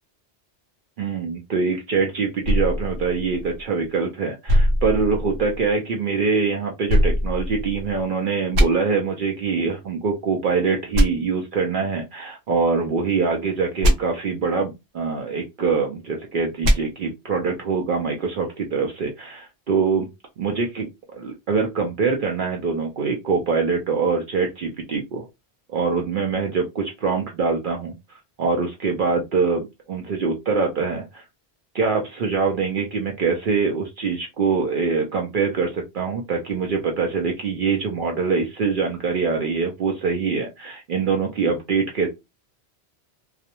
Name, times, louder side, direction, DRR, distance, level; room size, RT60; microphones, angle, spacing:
voice 1, 1.0-20.1 20.4-25.2 25.7-31.2 31.7-42.1, right 5 dB, 60° right, 1 dB, 0.6 m, -24 dB
sound 1, 2.4-3.9 4.5-5.7 6.9-8.0 8.5-8.7 10.9-11.1 13.8-13.9 16.6-16.8, equal, 85° right, 1.0 m, -20 dB
2.4 x 2.1 x 2.8 m, 0.22 s
omnidirectional pair, 1.1 m